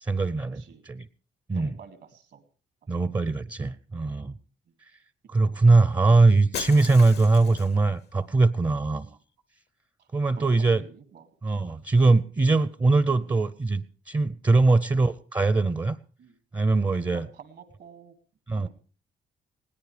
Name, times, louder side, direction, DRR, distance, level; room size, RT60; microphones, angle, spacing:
voice 1, 0.0-1.1 1.5-1.8 2.9-4.4 5.3-9.1 10.1-10.8 11.4-16.0 16.5-17.3 18.5-18.7, right 3 dB, 25° right, 17 dB, 0.6 m, -22 dB
voice 2, 1.5-2.4 4.7-4.8 6.7-6.9 8.3-8.4 9.0-9.2 10.0-10.1 10.4-10.5 10.7-11.7 13.1-13.3 16.2-16.3 17.1-18.2 18.5-18.7, right 7 dB, 75° right, 9 dB, 2.5 m, -49 dB
Shatter, 6.5-7.9, left 9 dB, 70° left, 0.8 m, -38 dB
20.5 x 17.0 x 3.3 m, 0.37 s
cardioid pair, 75°, 18 cm